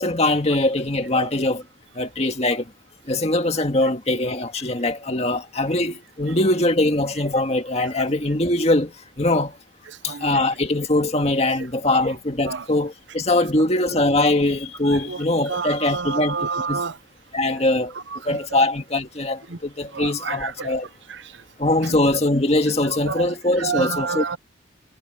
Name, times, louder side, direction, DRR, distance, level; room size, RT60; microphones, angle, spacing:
voice 1, 0.0-1.6 1.9-2.7 3.1-9.6 10.0-16.8 17.3-17.9 18.3-20.9 21.6-24.2, left 2 dB, 35° left, 2.0 m, -22 dB
voice 2, 10.0-10.4 11.9-12.1 12.5-12.7 15.1-17.0 17.5-17.6 17.9-18.6 19.5-19.6 19.9-20.7 21.1-21.4 21.8-22.0 23.0-24.4, right 5 dB, 75° right, 0.8 m, -30 dB
head